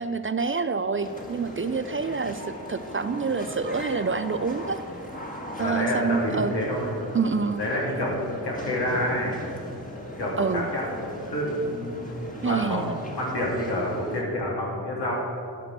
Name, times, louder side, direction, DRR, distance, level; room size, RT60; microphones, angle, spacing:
voice 1, 0.0-2.4 2.7-4.8 5.6-6.5 7.1-7.6 10.4-10.7 12.4-13.0, right 5 dB, 35° right, 11 dB, 0.4 m, -27 dB
sound 1, 1.0-14.2, equal, 20° left, 1.6 m, -39 dB
voice 2, 5.6-7.0 7.6-9.4 10.2-15.1, left 1 dB, 80° left, -4 dB, 2.9 m, -28 dB
12.0 x 6.2 x 6.5 m, 2.7 s
wide cardioid pair, 80°, 39 cm